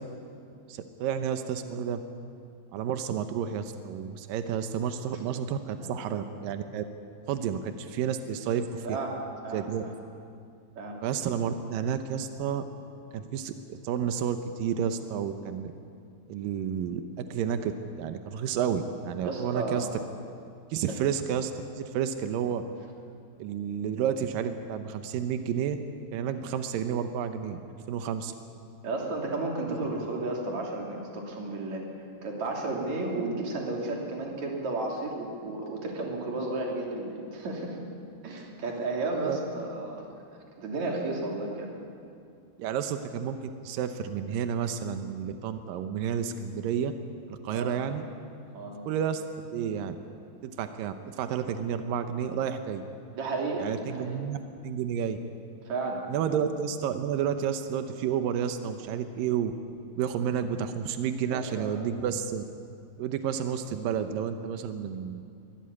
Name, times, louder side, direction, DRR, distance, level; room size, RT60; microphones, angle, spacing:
voice 1, 0.7-2.0 2.7-6.8 7.3-9.0 9.5-9.8 11.0-12.6 13.1-15.7 16.3-19.9 20.7-22.6 23.4-25.8 26.1-27.6 27.9-28.3 39.2-39.4 42.6-43.4 43.6-46.9 47.3-48.0 48.9-49.2 49.5-50.0 50.4-52.8 53.6-54.4 54.6-55.2 56.1-59.5 60.0-62.4 63.0-65.2, right 8 dB, 85° right, 8 dB, 2.0 m, -31 dB
voice 2, 8.8-9.2 9.4-9.9 10.8-11.0 19.2-19.9 28.8-31.8 32.2-37.8 38.2-40.1 40.6-41.7 47.5-47.8 48.5-48.8 53.1-54.2 55.6-56.4 61.3-61.8, right 2 dB, 45° right, 0 dB, 3.9 m, -33 dB
22.5 x 16.5 x 9.7 m, 2.4 s
omnidirectional pair, 5.3 m